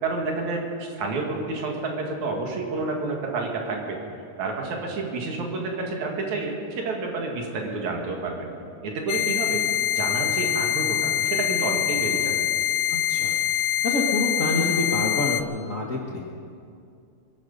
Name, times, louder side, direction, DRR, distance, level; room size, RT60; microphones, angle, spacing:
voice 1, 0.0-4.0 4.4-8.5 8.8-9.6 9.9-12.3, right 3 dB, 75° right, 1 dB, 3.4 m, -29 dB
sound 1, 9.1-15.4, left 11 dB, 80° left, 1.5 m, -24 dB
voice 2, 12.9-13.4 13.8-16.2, left 2 dB, 40° left, -2 dB, 1.2 m, -27 dB
23.0 x 11.5 x 5.4 m, 2.4 s
omnidirectional pair, 3.4 m